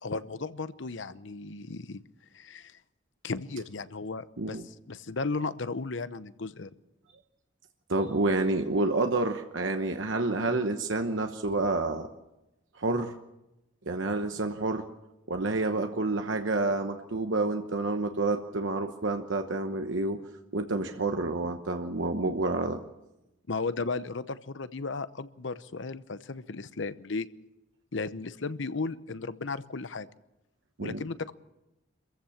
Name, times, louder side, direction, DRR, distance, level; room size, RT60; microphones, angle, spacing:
voice 1, 0.0-2.0 2.3-2.8 3.2-6.7 22.2-22.3 23.5-27.3 27.9-30.1 30.8-31.3, left 3 dB, 70° left, 14 dB, 0.8 m, -35 dB
voice 2, 4.4-4.7 7.9-12.1 12.8-13.2 13.9-14.8 15.3-20.2 20.5-22.8 30.8-31.0, right 2 dB, 75° right, 5 dB, 1.1 m, -29 dB
26.5 x 15.0 x 7.2 m, 0.95 s
head